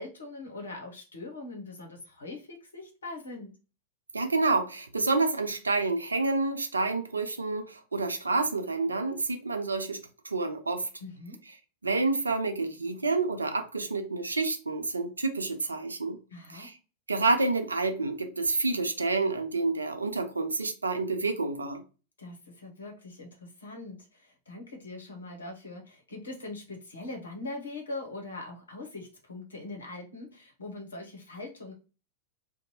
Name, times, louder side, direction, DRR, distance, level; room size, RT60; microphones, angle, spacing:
voice 1, 0.0-3.6 11.0-11.4 16.3-16.7 22.2-31.7, left 2 dB, 75° left, 0.8 m, -42 dB
voice 2, 4.1-10.9 11.8-16.2 16.5-16.7 17.1-21.8, right 3 dB, 80° right, 0.4 m, -28 dB
2.6 x 2.2 x 2.9 m
figure-of-eight pair, 90°, 0 cm